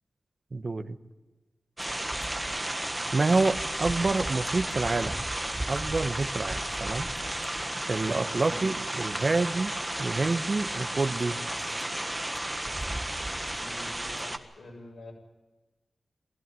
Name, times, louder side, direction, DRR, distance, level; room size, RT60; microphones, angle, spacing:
voice 1, 0.5-1.0 3.1-5.2 5.7-7.1 7.9-11.4, right 3 dB, 45° right, 9 dB, 1.2 m, -28 dB
sound 1, 1.8-14.4, right 1 dB, 15° right, 1.5 m, -33 dB
voice 2, 13.6-14.3 14.6-15.1, left 2 dB, 65° left, 0 dB, 7.7 m, -46 dB
23.5 x 15.5 x 9.1 m, 1.2 s
wide cardioid pair, 110°, 0 cm